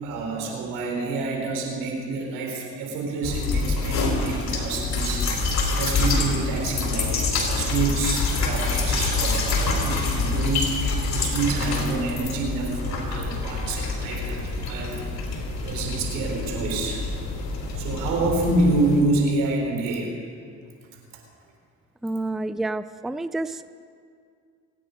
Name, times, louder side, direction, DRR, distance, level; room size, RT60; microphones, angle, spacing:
voice 1, 0.0-15.0 15.6-17.0 17.8-20.1, right 3 dB, 85° right, 1 dB, 3.8 m, -27 dB
sound 1, 3.2-19.0, left 3 dB, 60° left, 3.6 m, -26 dB
voice 2, 22.0-23.7, right 2 dB, ahead, 13 dB, 0.4 m, -29 dB
24.5 x 9.6 x 5.1 m, 2.2 s
supercardioid pair, 70°, 32 cm